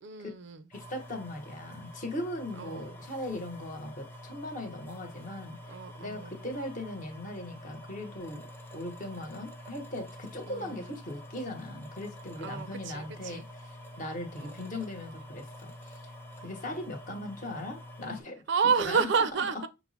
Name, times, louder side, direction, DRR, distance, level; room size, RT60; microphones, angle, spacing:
voice 1, 0.0-0.7 2.6-3.0 5.7-6.3 10.5-10.9 12.4-13.5 14.4-14.6 16.7-16.8 18.5-19.7, right 6 dB, 65° right, 0.4 m, -30 dB
voice 2, 0.7-8.4 8.7-16.0 16.4-18.4 18.8-19.3, left 1 dB, 45° left, 1.0 m, -39 dB
sound 1, 0.7-18.2, left 1 dB, 10° left, 0.6 m, -47 dB
5.7 x 2.0 x 4.0 m
head